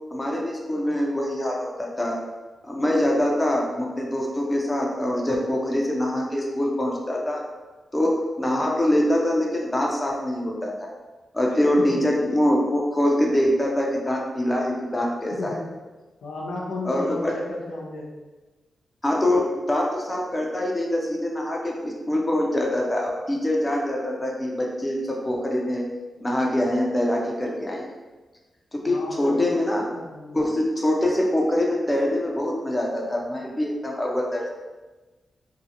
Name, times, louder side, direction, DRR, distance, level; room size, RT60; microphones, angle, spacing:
voice 1, 0.1-2.1 2.6-7.4 7.9-10.9 11.3-15.6 16.8-17.3 19.0-25.8 26.2-27.8 28.7-29.8 30.3-34.5, left 1 dB, 20° left, -1 dB, 0.6 m, -24 dB
voice 2, 11.8-12.4 15.3-15.7 16.2-18.1 28.8-30.4, left 2 dB, 85° left, -3 dB, 0.5 m, -34 dB
2.7 x 2.3 x 2.6 m, 1.2 s
cardioid pair, 55°, 0 cm